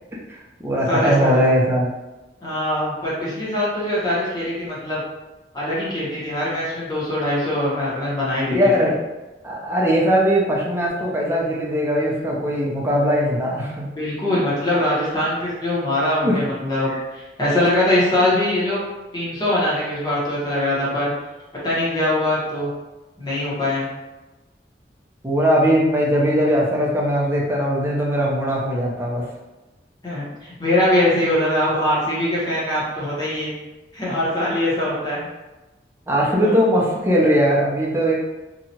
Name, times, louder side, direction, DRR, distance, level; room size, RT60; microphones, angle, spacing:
voice 1, 0.3-1.9 8.5-9.0 9.4-13.9 14.3-14.4 16.2-16.4 16.9-17.0 25.2-29.2 36.1-38.1, equal, 15° right, -4 dB, 0.5 m, -20 dB
voice 2, 0.9-1.4 2.4-5.0 5.5-8.9 14.0-18.8 19.1-21.1 21.6-22.7 23.2-23.9 30.0-33.5 33.9-35.3 36.2-36.5, left 1 dB, 25° left, -8 dB, 0.9 m, -22 dB
2.8 x 2.3 x 2.7 m, 1.1 s
head